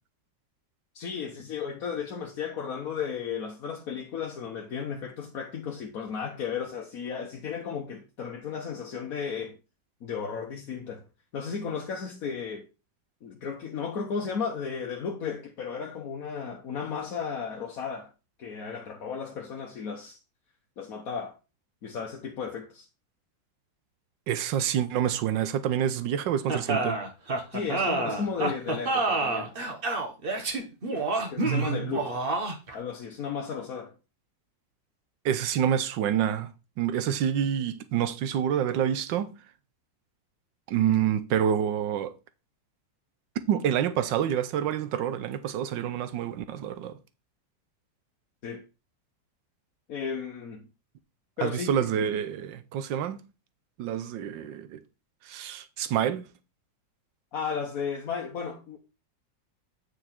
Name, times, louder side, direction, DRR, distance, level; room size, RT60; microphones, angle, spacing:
voice 1, 0.9-9.6 10.0-11.0 11.3-12.7 13.2-18.1 18.4-20.2 20.8-21.4 21.8-22.9 27.5-29.5 31.3-32.3 32.7-33.9 48.4-48.6 49.9-50.7 51.4-51.7 57.3-58.8, left 6 dB, 55° left, 1.4 m, -34 dB
voice 2, 24.3-27.0 31.4-31.9 35.2-36.5 36.8-39.3 40.7-42.1 43.5-47.0 51.4-53.2 53.8-54.8 55.3-56.2, right 9 dB, 85° right, 1.4 m, -27 dB
sound 1, 26.5-32.8, right 3 dB, 35° right, 1.2 m, -28 dB
8.8 x 4.9 x 4.4 m
omnidirectional pair, 2.0 m